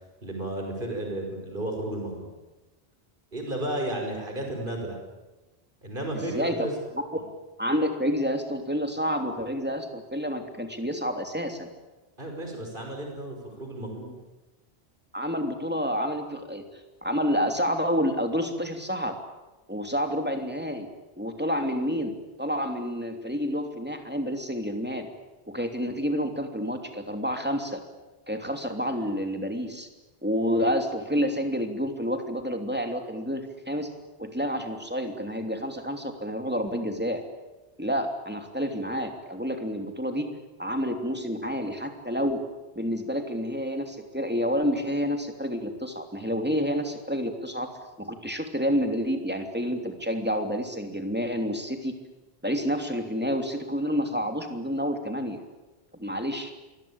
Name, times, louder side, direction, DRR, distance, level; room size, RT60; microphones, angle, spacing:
voice 1, 0.2-2.3 3.3-5.0 5.8-6.7 12.2-14.1, right 1 dB, 55° right, 2 dB, 5.7 m, -33 dB
voice 2, 6.1-6.7 6.9-7.0 7.6-11.7 15.1-16.6 17.0-19.2 19.7-20.9 21.2-25.1 25.5-27.8 28.3-29.9 30.2-33.9 34.2-37.2 37.8-40.3 40.6-42.4 42.7-47.7 48.0-51.9 52.4-55.4 56.0-56.5, equal, 10° right, 5 dB, 3.0 m, -29 dB
26.5 x 21.5 x 8.8 m, 1.1 s
omnidirectional pair, 1.1 m